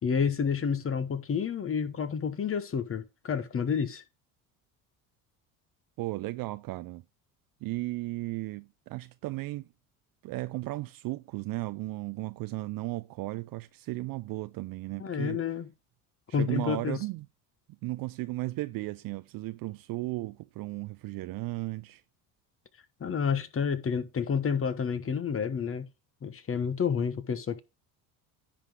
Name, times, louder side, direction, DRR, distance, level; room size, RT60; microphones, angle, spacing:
voice 1, 0.0-4.0 15.0-15.7 16.3-17.0 23.0-25.9 26.2-27.6, left 6 dB, 30° left, 1.1 m, -29 dB
voice 2, 6.0-7.0 7.6-9.7 10.2-15.4 16.3-17.3 17.8-22.0, right 20 dB, 50° right, 0.5 m, -35 dB
10.0 x 4.0 x 4.7 m
supercardioid pair, 80°, 43 cm